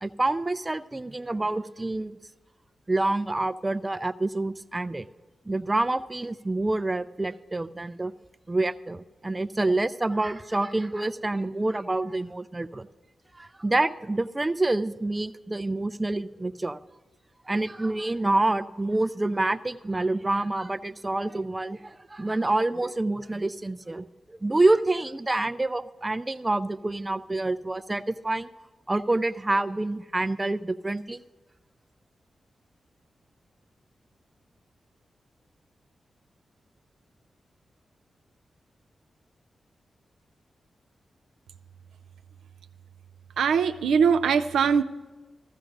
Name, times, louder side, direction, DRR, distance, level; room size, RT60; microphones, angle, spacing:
voice 1, 0.0-2.2 2.9-5.1 5.5-8.1 8.5-12.9 13.3-16.8 17.5-28.5 28.9-31.2, right 2 dB, 25° right, 12 dB, 0.5 m, -27 dB
voice 2, 43.4-44.8, right 6 dB, 90° right, 7 dB, 0.4 m, -21 dB
15.5 x 14.0 x 2.6 m, 1.2 s
supercardioid pair, 45°, 0 cm